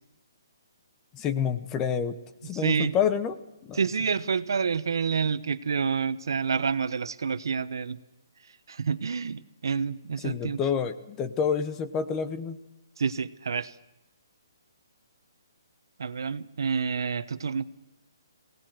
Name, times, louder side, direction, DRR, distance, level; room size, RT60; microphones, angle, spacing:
voice 1, 1.1-3.4 3.7-3.8 10.2-12.6, left 7 dB, 15° left, 11 dB, 0.9 m, -28 dB
voice 2, 2.6-3.0 3.7-8.0 8.7-10.6 13.0-13.7 16.0-17.7, right 6 dB, 70° right, 14 dB, 1.1 m, -28 dB
21.5 x 18.0 x 7.8 m, 0.96 s
hypercardioid pair, 165°, 2 cm